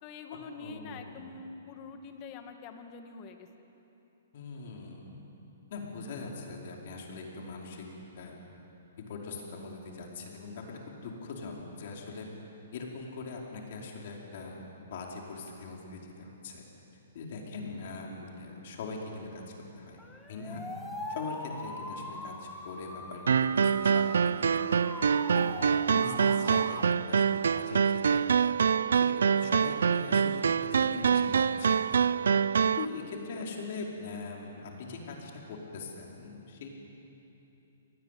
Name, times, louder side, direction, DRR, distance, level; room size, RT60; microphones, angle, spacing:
voice 1, 0.0-3.5, left 4 dB, 30° left, 6 dB, 2.0 m, -45 dB
voice 2, 0.6-1.2 4.3-5.2 5.7-7.9 8.1-8.4 9.1-12.3 12.7-16.6 17.1-19.4 19.7-20.0 20.3-20.6 21.1-24.8 25.3-28.5 28.9-32.1 32.6-36.7, left 4 dB, 50° left, -1 dB, 5.0 m, -41 dB
sound 1, 20.0-26.8, left 1 dB, 5° left, 1.7 m, -42 dB
sound 2, 23.3-32.9, right 6 dB, 85° right, 0.5 m, -25 dB
26.5 x 19.0 x 9.4 m, 3.0 s
hypercardioid pair, 160°, 0 cm